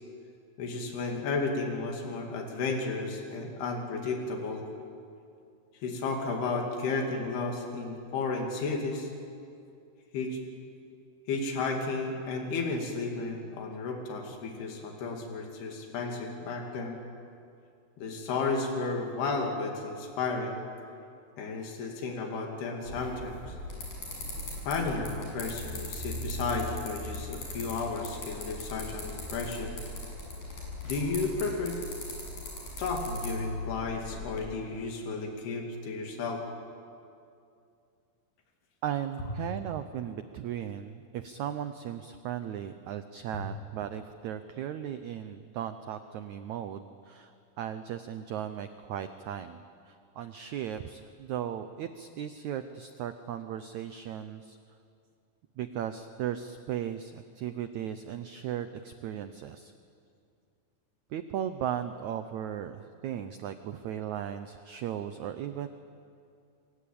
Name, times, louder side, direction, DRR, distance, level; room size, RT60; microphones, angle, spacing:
voice 1, 0.6-4.7 5.8-9.1 10.1-10.4 11.3-17.0 18.0-20.6 21.4-23.6 24.7-29.8 30.8-31.8 32.8-36.4, left 3 dB, 90° left, 2 dB, 4.5 m, -33 dB
sound 1, 22.9-34.4, left 1 dB, 60° left, 8.5 m, -39 dB
voice 2, 38.8-54.6 55.6-59.7 61.1-65.7, right 10 dB, 90° right, 10 dB, 1.6 m, -37 dB
28.0 x 24.0 x 8.7 m, 2.4 s
omnidirectional pair, 4.5 m